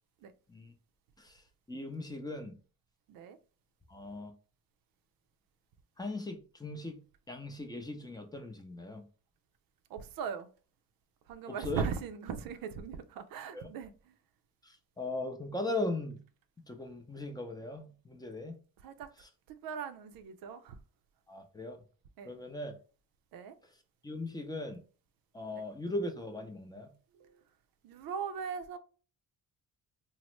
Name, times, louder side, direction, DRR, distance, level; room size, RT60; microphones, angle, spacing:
voice 1, 1.2-2.6 3.9-4.3 6.0-7.0 7.3-9.0 11.5-11.8 13.5-13.7 14.6-16.2 16.7-18.6 19.2-19.3 21.3-21.8 22.2-22.7 23.6-23.7 24.0-24.8 25.3-26.9, left 2 dB, 10° left, 0.5 m, -39 dB
voice 2, 9.9-10.5 11.3-13.9 18.8-19.1 19.5-20.8 22.2-22.3 23.3-23.6 25.5-25.6 27.2-27.4 27.8-28.8, right 6 dB, 85° right, 0.5 m, -39 dB
3.0 x 2.0 x 3.0 m
cardioid pair, 100°, 34 cm